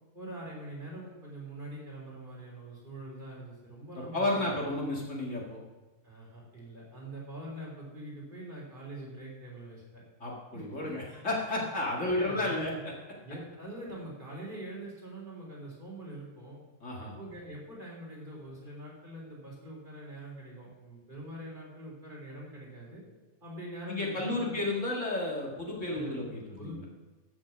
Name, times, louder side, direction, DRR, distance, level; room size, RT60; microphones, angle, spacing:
voice 1, 0.1-4.8 6.0-10.0 10.5-10.9 11.5-11.6 12.0-12.8 13.2-16.6 17.0-23.0 23.4-24.6 25.9-26.2 26.6-26.9, right 1 dB, 30° right, -4 dB, 3.9 m, -44 dB
voice 2, 4.1-5.6 10.2-12.7 16.8-17.1 23.9-26.8, left 2 dB, 50° left, -2 dB, 2.4 m, -32 dB
14.5 x 6.1 x 6.0 m, 1.2 s
omnidirectional pair, 1.6 m